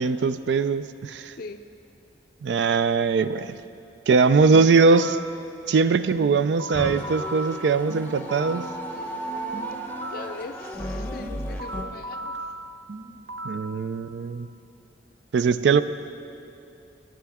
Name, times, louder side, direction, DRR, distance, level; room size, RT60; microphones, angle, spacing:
voice 1, 0.0-1.3 2.4-3.5 4.1-5.2 5.7-8.7 13.4-14.5 15.3-15.8, right 4 dB, 70° right, 13 dB, 0.4 m, -21 dB
sound 1, 4.9-5.4 6.2-8.7 9.5-10.4 11.2-13.7, right 2 dB, 85° right, 0.8 m, -37 dB
sound 2, 6.7-11.8, equal, 10° left, 0.8 m, -34 dB
voice 2, 8.9-12.3, left 3 dB, 55° left, 8 dB, 0.4 m, -41 dB
14.5 x 10.0 x 3.6 m, 2.7 s
head